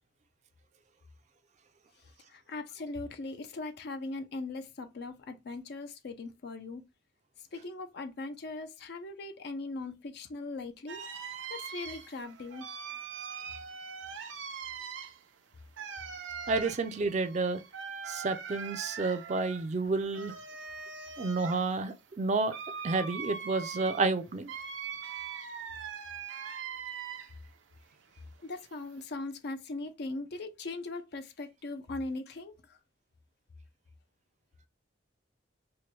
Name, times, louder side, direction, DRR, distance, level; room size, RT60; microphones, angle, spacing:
voice 1, 2.3-6.8 7.5-11.1 11.5-12.7 20.7-21.1 28.4-32.8, left 2 dB, 60° left, 0.5 m, -40 dB
sound 1, 10.9-27.5 27.9-29.0, right 6 dB, 90° right, 0.6 m, -42 dB
voice 2, 16.5-17.6 18.1-20.3 21.2-22.5 22.8-24.5, right 3 dB, 40° right, 0.4 m, -30 dB
4.4 x 2.2 x 3.0 m
head